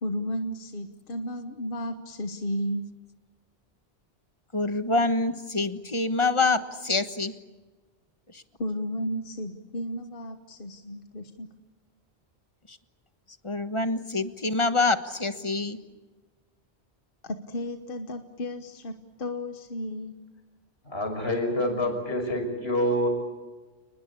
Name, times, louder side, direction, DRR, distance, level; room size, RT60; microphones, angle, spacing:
voice 1, 0.0-2.8 8.6-11.5 17.2-20.1, equal, 55° left, 7 dB, 1.4 m, -33 dB
voice 2, 4.5-7.3 8.3-8.4 12.7-12.8 13.4-15.8, left 3 dB, 30° left, 10 dB, 1.4 m, -26 dB
voice 3, 20.9-23.1, left 1 dB, 70° left, 4 dB, 6.2 m, -27 dB
29.0 x 20.5 x 8.5 m, 1.3 s
omnidirectional pair, 1.1 m